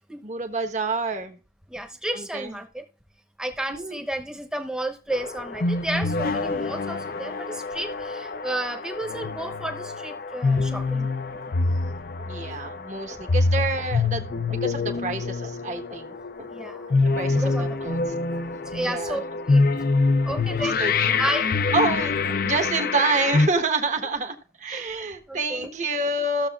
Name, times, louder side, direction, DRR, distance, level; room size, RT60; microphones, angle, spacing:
voice 1, 0.2-1.4 2.1-2.6 3.7-4.1 12.2-16.5 16.9-18.4 18.8-19.4 19.8-19.9 20.3-21.4 21.7-26.5, right 3 dB, 40° right, 6 dB, 1.1 m, -28 dB
voice 2, 1.7-2.8 3.4-11.1 13.3-13.4 16.5-16.9 17.2-17.8 18.3-19.2 19.5-19.7 20.2-20.8 21.2-21.5 24.7-24.9 25.3-25.7, right 1 dB, 5° right, 4 dB, 0.9 m, -32 dB
sound 1, 5.1-23.5, left 3 dB, 50° left, 0.5 m, -25 dB
14.5 x 6.8 x 2.4 m, 0.34 s
head